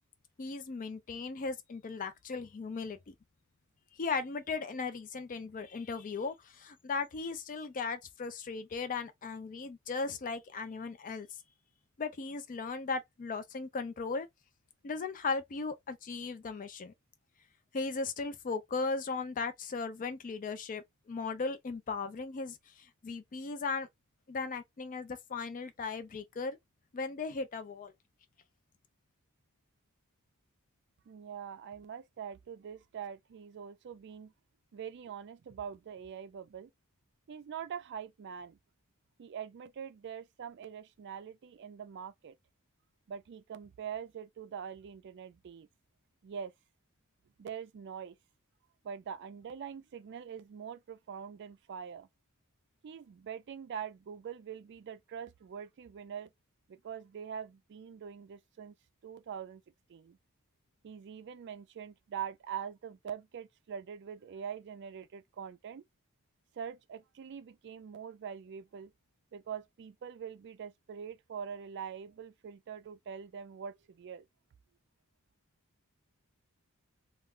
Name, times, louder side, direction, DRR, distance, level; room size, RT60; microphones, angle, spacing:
voice 1, 0.4-3.1 4.0-11.3 12.0-14.3 14.8-16.9 17.7-22.6 23.0-23.9 24.3-26.6 26.9-27.9, left 4 dB, 35° left, 0.4 m, -37 dB
voice 2, 31.1-34.3 34.7-36.7 37.3-38.6 39.2-42.4 43.1-45.7 46.2-46.5 47.4-48.2 48.8-52.1 52.8-56.3 56.7-58.7 59.0-59.6 59.9-60.2 60.8-65.8 66.5-68.9 69.3-74.3, right 7 dB, 55° right, 0.3 m, -43 dB
2.4 x 2.2 x 3.5 m
head